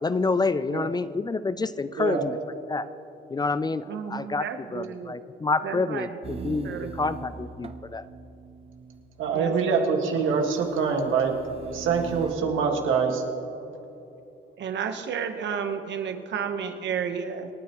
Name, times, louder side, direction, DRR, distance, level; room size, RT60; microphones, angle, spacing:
voice 1, 0.0-2.4 2.7-2.9 3.3-8.0, left 3 dB, 20° left, 14 dB, 0.4 m, -28 dB
voice 2, 3.9-5.2 5.6-6.9 9.3-9.5 14.6-17.5, right 7 dB, 65° right, 7 dB, 1.1 m, -32 dB
sound 1, 6.2-9.2 10.6-12.3, right 5 dB, 30° right, 0.6 m, -41 dB
voice 3, 9.2-11.3 11.7-13.2, right 5 dB, 80° right, 2 dB, 1.8 m, -24 dB
27.0 x 9.5 x 3.0 m, 2.9 s
cardioid pair, 90°, 20 cm